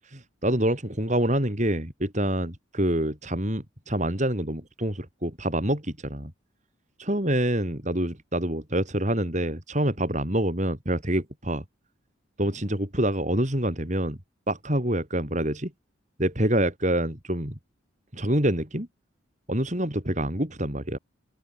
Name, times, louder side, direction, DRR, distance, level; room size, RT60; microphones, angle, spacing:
voice 1, 0.1-6.3 7.0-11.6 12.4-14.2 14.5-15.7 16.2-17.5 18.1-18.9 19.5-21.0, right 1 dB, 35° right, 4.6 m, -26 dB
open air
head